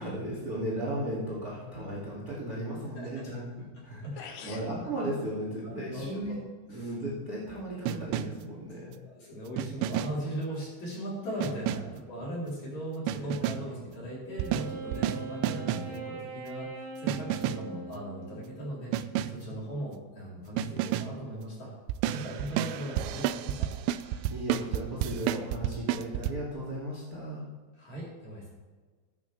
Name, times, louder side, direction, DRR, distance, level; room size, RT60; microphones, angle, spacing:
voice 1, 0.0-3.5 3.8-6.4 6.7-8.9 13.7-13.8 24.1-27.4, right 1 dB, 25° right, -5 dB, 2.1 m, -36 dB
sound 1, 3.8-3.9 4.2-4.7, left 6 dB, 90° left, 2.0 m, -44 dB
voice 2, 4.0-4.6 5.6-6.1 6.7-6.9 8.8-18.9 19.3-21.7 22.1-23.7 27.8-28.5, equal, 40° left, -6 dB, 4.8 m, -38 dB
sound 2, 7.9-8.5 9.6-10.3 11.4-12.0 13.1-13.8 14.4-16.0 17.1-17.8 18.9-19.5 20.6-21.2 21.9-26.3, right 12 dB, 85° right, 2.7 m, -31 dB
Wind instrument woodwind instrument, 14.3-18.8, right 3 dB, 55° right, 6.0 m, -42 dB
15.5 x 8.6 x 3.4 m, 1.4 s
omnidirectional pair, 5.4 m